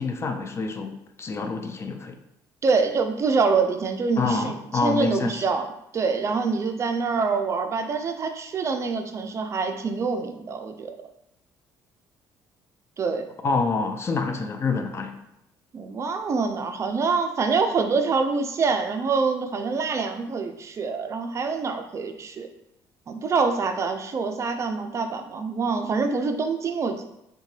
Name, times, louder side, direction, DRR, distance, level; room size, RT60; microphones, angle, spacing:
voice 1, 0.0-2.2 4.2-5.5 13.4-15.2, left 4 dB, 35° left, 6 dB, 0.4 m, -27 dB
voice 2, 2.6-5.7 5.9-10.9 13.0-13.2 15.7-22.5 23.1-27.0, right 4 dB, 35° right, 6 dB, 0.4 m, -25 dB
3.6 x 2.2 x 3.1 m, 0.82 s
cardioid pair, 90°, 8 cm